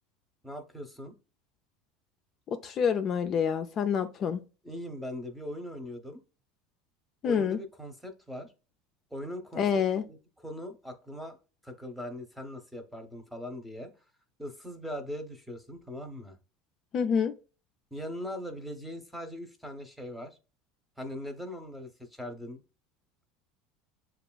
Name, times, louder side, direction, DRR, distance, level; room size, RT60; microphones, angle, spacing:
voice 1, 0.4-1.1 4.6-6.2 7.2-8.5 9.1-9.8 10.1-11.4 11.6-13.9 14.4-16.4 17.9-20.4 21.0-22.6, equal, ahead, 0.8 m, -40 dB
voice 2, 2.5-4.4 7.2-7.6 9.6-10.0 16.9-17.3, left 7 dB, 40° left, 0.4 m, -27 dB
6.5 x 2.3 x 2.2 m
supercardioid pair, 115°, 0 cm